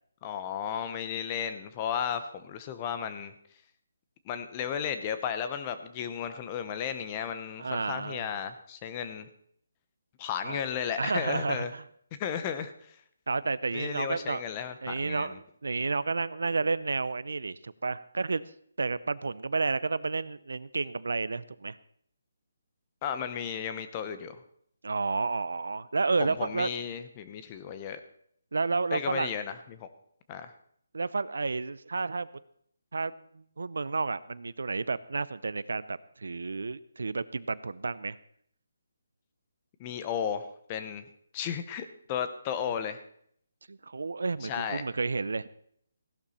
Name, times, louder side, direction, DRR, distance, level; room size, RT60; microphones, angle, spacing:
voice 1, 0.2-3.3 4.3-9.3 10.2-11.7 12.2-12.7 13.7-15.3 23.0-24.4 26.2-28.0 28.9-29.9 30.3-30.5 39.8-41.0 41.3-43.0 44.4-44.8, left 8 dB, 20° left, 10 dB, 0.8 m, -34 dB
voice 2, 7.6-8.2 10.4-10.6 11.0-11.8 13.3-14.4 14.8-18.4 18.8-21.8 24.8-26.7 28.5-29.3 30.9-32.3 32.9-38.2 43.7-45.5, right 4 dB, 80° right, 17 dB, 0.6 m, -31 dB
16.0 x 11.5 x 4.3 m, 0.65 s
hypercardioid pair, 170°, 0 cm